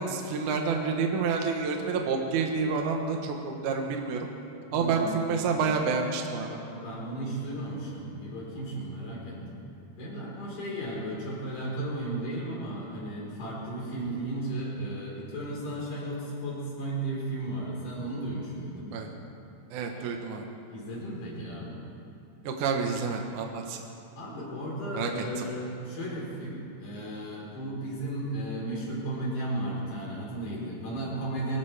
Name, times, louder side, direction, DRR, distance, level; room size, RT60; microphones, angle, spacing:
voice 1, 0.0-4.3 4.7-6.5 18.9-19.1 19.7-20.5 22.4-23.8 24.9-25.5, right 5 dB, 65° right, 2 dB, 2.4 m, -29 dB
voice 2, 4.7-5.2 6.5-9.6 10.0-19.0 20.0-20.1 20.6-21.8 24.2-31.6, right 1 dB, 60° left, -5 dB, 5.7 m, -35 dB
24.0 x 16.0 x 3.4 m, 2.6 s
omnidirectional pair, 4.1 m